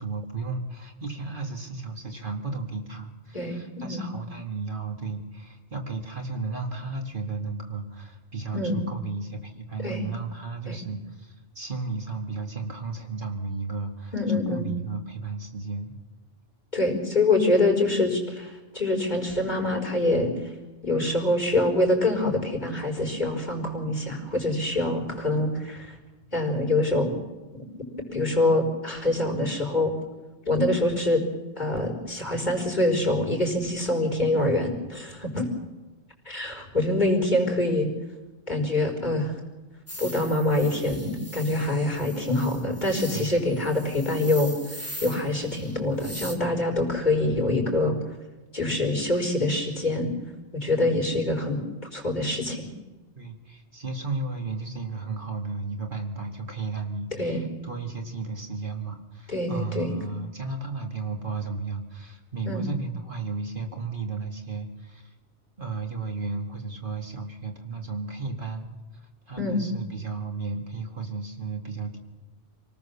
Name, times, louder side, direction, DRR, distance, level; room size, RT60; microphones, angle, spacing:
voice 1, 0.0-14.1 14.5-15.9 43.1-43.3 53.2-65.1 65.6-72.0, right 4 dB, 50° right, 3 dB, 2.4 m, -34 dB
voice 2, 3.3-4.1 8.5-8.8 9.8-10.0 10.7-10.8 14.1-14.7 16.7-20.5 20.8-26.0 26.3-27.1 27.5-27.6 28.1-29.9 30.5-31.2 31.6-35.5 36.2-37.9 38.5-39.3 40.0-47.9 48.5-50.1 50.5-51.6 51.9-52.7 57.1-57.5 59.3-59.9 62.4-62.6 69.4-69.6, left 2 dB, 40° left, 1 dB, 4.8 m, -25 dB
sound 1, 39.9-46.3, equal, 15° right, 2.6 m, -41 dB
27.5 x 18.5 x 7.1 m, 1.2 s
omnidirectional pair, 1.1 m